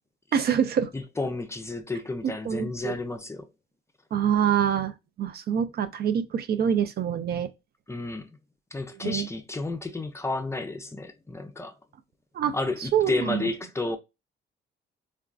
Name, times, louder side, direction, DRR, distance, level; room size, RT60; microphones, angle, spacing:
voice 1, 0.3-0.9 2.5-3.0 4.1-7.5 9.0-9.3 12.4-12.5 12.9-13.4, right 8 dB, 50° right, 0.4 m, -25 dB
voice 2, 0.9-3.5 7.9-8.3 8.7-11.8 12.5-14.0, left 2 dB, 15° left, 0.4 m, -31 dB
3.5 x 2.3 x 2.3 m
cardioid pair, 90°, 20 cm